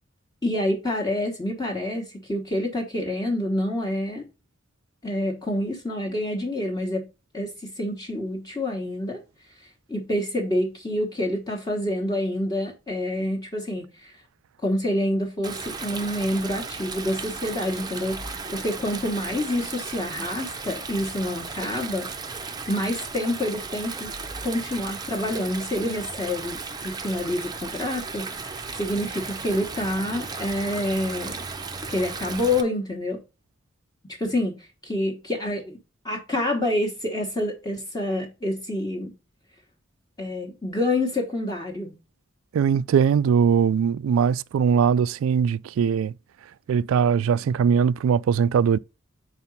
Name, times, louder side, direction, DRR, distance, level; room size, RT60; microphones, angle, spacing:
voice 1, 0.4-4.2 5.0-7.1 7.3-9.2 9.6-14.1 14.6-22.1 22.7-24.1 24.4-31.5 31.9-33.2 34.2-35.8 36.0-39.1 40.2-41.9, left 1 dB, 20° left, 1.1 m, -27 dB
Stream, 15.4-32.6, right 4 dB, 20° right, 0.6 m, -35 dB
voice 2, 42.5-46.1 46.7-48.8, right 7 dB, 85° right, 0.3 m, -21 dB
4.8 x 4.4 x 5.2 m
head